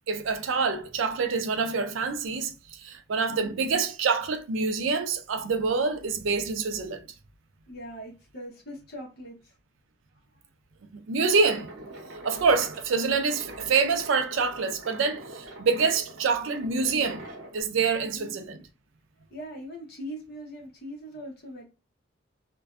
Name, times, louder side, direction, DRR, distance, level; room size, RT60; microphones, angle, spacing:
voice 1, 0.1-7.1 10.8-11.7 12.2-17.2 17.5-18.6, right 5 dB, 85° right, 0.4 m, -26 dB
voice 2, 3.3-3.6 7.7-9.5 10.3-10.4 18.0-18.4 19.3-21.7, equal, 55° left, 0.9 m, -41 dB
sound 1, 11.3-17.6, right 1 dB, 65° right, 0.8 m, -44 dB
2.4 x 2.2 x 2.4 m
head